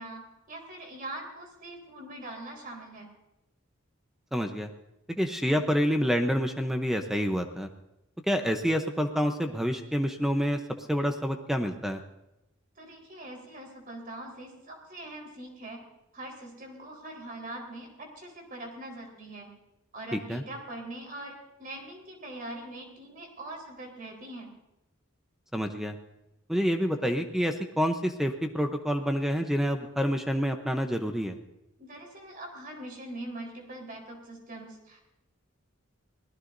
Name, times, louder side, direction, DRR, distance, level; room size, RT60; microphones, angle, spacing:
voice 1, 0.0-3.1 12.8-15.8 16.1-19.5 19.9-24.5 31.8-35.0, right 1 dB, 45° right, 1 dB, 4.2 m, -42 dB
voice 2, 4.3-4.7 5.1-7.7 8.3-10.6 10.9-12.0 20.3-20.4 25.5-26.0 26.5-31.4, equal, ahead, 5 dB, 0.8 m, -28 dB
24.0 x 18.0 x 2.7 m, 0.89 s
head